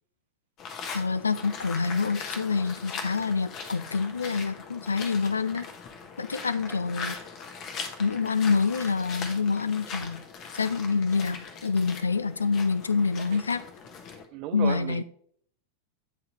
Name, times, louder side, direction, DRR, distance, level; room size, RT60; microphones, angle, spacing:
sound 1, 0.6-14.2, left 5 dB, 35° left, 1.1 m, -40 dB
voice 1, 0.9-5.7 6.2-7.2 8.0-10.2 10.5-13.6 14.5-15.0, left 5 dB, 75° left, 0.4 m, -27 dB
voice 2, 14.3-15.0, right 13 dB, 40° right, 0.5 m, -34 dB
9.4 x 3.9 x 3.0 m
figure-of-eight pair, 90°, 0 cm